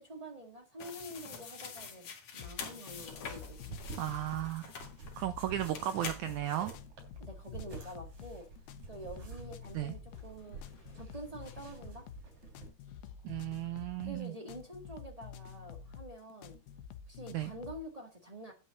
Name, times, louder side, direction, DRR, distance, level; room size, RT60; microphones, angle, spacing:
voice 1, 0.0-2.1 2.3-3.8 7.2-8.5 8.9-10.6 10.9-12.0 14.0-16.6 17.1-18.5, right 1 dB, 30° right, 0.6 m, -47 dB
sound 1, 0.8-5.2 5.7-6.8, left 6 dB, 50° left, 2.8 m, -46 dB
sound 2, 2.4-17.9, left 7 dB, 85° left, 2.8 m, -49 dB
sound 3, 3.0-12.7, right 3 dB, 50° right, 4.7 m, -50 dB
voice 2, 4.0-4.7 5.2-6.7 9.7-9.9 13.2-14.3 17.3-17.5, right 13 dB, 85° right, 1.7 m, -35 dB
9.8 x 5.6 x 6.4 m
omnidirectional pair, 4.2 m